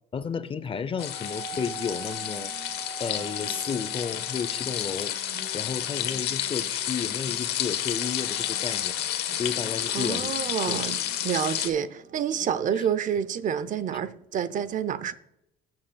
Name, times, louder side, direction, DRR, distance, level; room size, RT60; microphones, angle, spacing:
voice 1, 0.1-2.5 3.0-5.1 5.5-8.9 9.4-10.9, left 6 dB, 30° left, 0.6 m, -32 dB
sound 1, 1.0-11.7, left 11 dB, 80° left, 0.9 m, -30 dB
Wind instrument woodwind instrument, 1.0-9.9, right 5 dB, 10° left, 1.3 m, -45 dB
sound 2, 1.2-12.6, right 3 dB, 75° right, 3.4 m, -51 dB
voice 2, 9.9-15.1, right 8 dB, 50° right, 0.6 m, -28 dB
14.5 x 7.6 x 2.2 m
cardioid pair, 110°, 17 cm